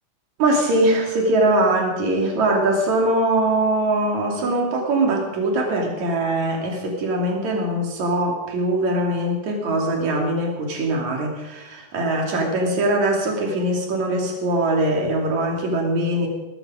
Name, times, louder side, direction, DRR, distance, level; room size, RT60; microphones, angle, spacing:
voice 1, 0.4-16.3, right 1 dB, 50° right, 0 dB, 3.9 m, -22 dB
18.0 x 14.0 x 5.0 m, 1.0 s
omnidirectional pair, 4.3 m